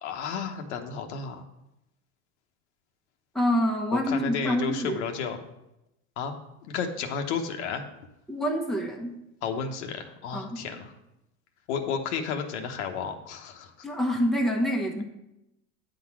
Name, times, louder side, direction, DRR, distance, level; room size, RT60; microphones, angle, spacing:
voice 1, 0.0-1.4 3.9-5.4 6.2-6.3 6.6-7.9 9.4-10.9 11.7-13.9, left 6 dB, 80° left, 4 dB, 1.1 m, -32 dB
voice 2, 3.3-5.0 8.3-9.1 10.3-10.6 13.8-15.0, equal, ahead, 0 dB, 0.9 m, -26 dB
9.1 x 3.9 x 5.9 m, 0.87 s
supercardioid pair, 125°, 34 cm